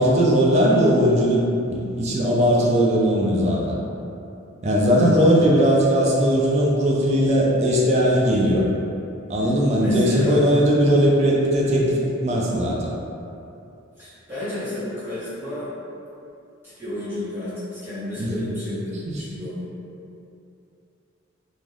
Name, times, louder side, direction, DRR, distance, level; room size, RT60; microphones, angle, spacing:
voice 1, 0.0-3.8 4.6-8.6 9.3-12.9 18.2-18.5, equal, 35° right, -3 dB, 0.4 m, -19 dB
voice 2, 9.8-10.4 14.0-15.7 16.8-19.6, left 1 dB, 10° right, -14 dB, 1.1 m, -32 dB
2.4 x 2.3 x 3.2 m, 2.7 s
head